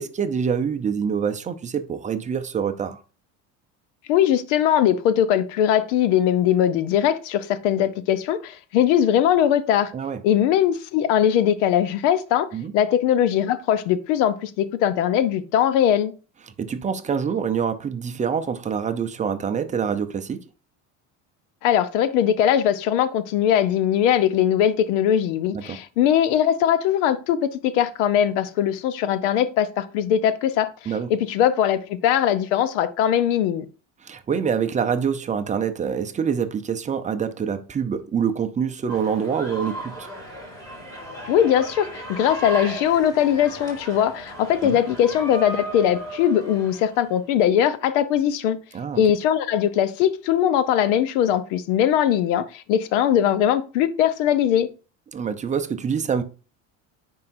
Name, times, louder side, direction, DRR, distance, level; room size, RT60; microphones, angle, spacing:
voice 1, 0.0-3.0 9.9-10.2 12.5-12.7 16.6-20.4 25.5-25.8 30.9-31.1 34.0-40.1 44.6-44.8 48.7-49.0 55.1-56.2, right 7 dB, 20° right, 0.6 m, -26 dB
voice 2, 4.1-9.9 10.2-12.5 12.7-16.1 21.6-33.7 41.2-48.6 48.9-54.7, left 10 dB, 90° left, 0.8 m, -20 dB
sound 1, 38.9-47.1, equal, 10° left, 2.5 m, -36 dB
9.5 x 4.7 x 2.6 m
cardioid pair, 135°, 35 cm